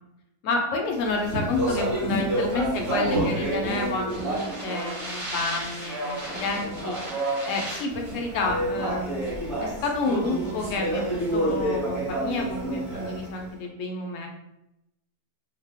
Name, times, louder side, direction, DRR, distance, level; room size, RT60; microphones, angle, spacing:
voice 1, 0.4-7.0 7.4-11.0 11.3-14.3, left 3 dB, 70° left, 2 dB, 0.8 m, -29 dB
Speech, 1.0-13.4, right 1 dB, 30° right, 1.3 m, -29 dB
2.8 x 2.1 x 3.4 m, 0.86 s
omnidirectional pair, 1.7 m